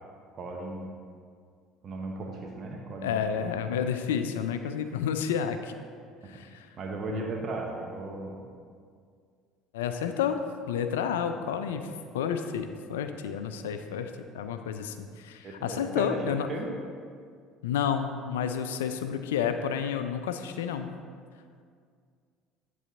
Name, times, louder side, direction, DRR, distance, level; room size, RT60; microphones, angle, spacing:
voice 1, 0.3-0.9 1.8-3.1 3.4-3.5 6.8-8.5 11.7-11.9 15.4-16.7, right 2 dB, 45° right, 0 dB, 0.9 m, -36 dB
voice 2, 3.0-5.7 6.2-6.7 7.1-7.2 9.7-10.4 10.7-16.5 17.6-21.0, left 8 dB, 80° left, 8 dB, 0.3 m, -30 dB
10.0 x 4.0 x 4.0 m, 2.1 s
hypercardioid pair, 65°, 0 cm